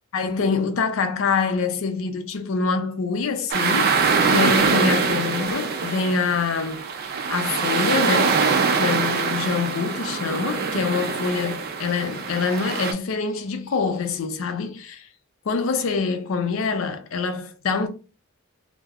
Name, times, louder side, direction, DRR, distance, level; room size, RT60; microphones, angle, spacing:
voice 1, 0.1-4.0 4.2-6.8 7.1-8.5 8.7-15.1 15.5-17.9, left 5 dB, 70° left, 0.4 m, -25 dB
sound 1, 3.5-12.9, right 5 dB, 45° right, 0.4 m, -23 dB
2.3 x 2.0 x 3.4 m
head